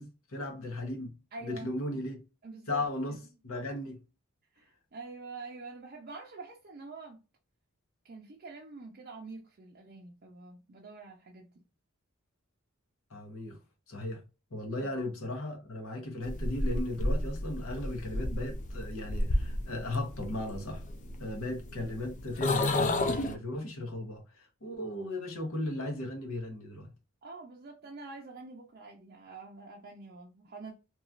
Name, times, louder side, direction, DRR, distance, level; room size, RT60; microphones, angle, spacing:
voice 1, 0.0-1.1 1.4-2.2 2.7-3.2 3.4-4.0 13.1-13.6 13.9-14.2 14.5-20.8 21.2-26.9, left 1 dB, 70° left, 0.9 m, -36 dB
voice 2, 1.3-1.7 2.4-3.2 4.5-7.2 8.0-11.6 14.8-14.9 27.2-30.7, right 3 dB, 45° right, 0.5 m, -46 dB
sound 1, 16.2-23.4, left 1 dB, 35° left, 0.4 m, -32 dB
2.9 x 2.3 x 2.4 m
head